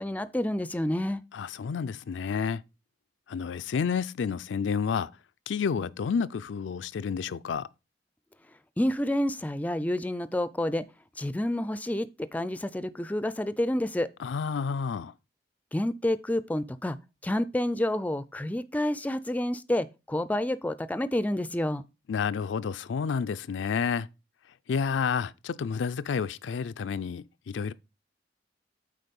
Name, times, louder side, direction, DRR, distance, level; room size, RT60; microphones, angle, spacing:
voice 1, 0.0-1.2 8.8-10.9 11.2-14.1 15.7-17.0 17.2-21.8, left 1 dB, 10° left, 0.4 m, -29 dB
voice 2, 1.3-2.6 3.3-5.1 5.5-7.7 14.2-15.1 22.1-24.1 24.7-27.7, left 6 dB, 85° left, 0.4 m, -30 dB
8.5 x 4.0 x 5.2 m
head